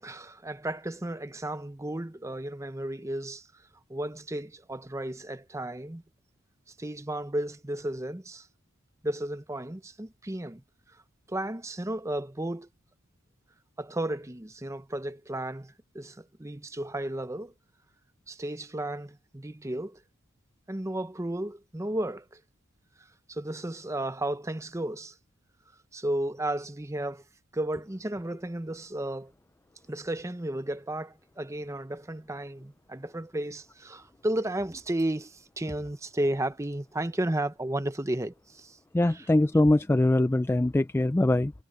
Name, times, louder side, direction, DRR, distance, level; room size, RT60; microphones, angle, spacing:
voice 1, 0.0-3.5 3.9-6.0 6.8-8.5 9.0-10.6 11.3-12.7 13.8-17.5 18.3-20.0 20.7-22.4 23.3-25.2 25.9-27.2 27.5-29.3 29.9-38.8 39.1-39.3, right 1 dB, 15° right, 0.7 m, -33 dB
voice 2, 38.9-41.5, left 1 dB, 10° left, 0.3 m, -23 dB
head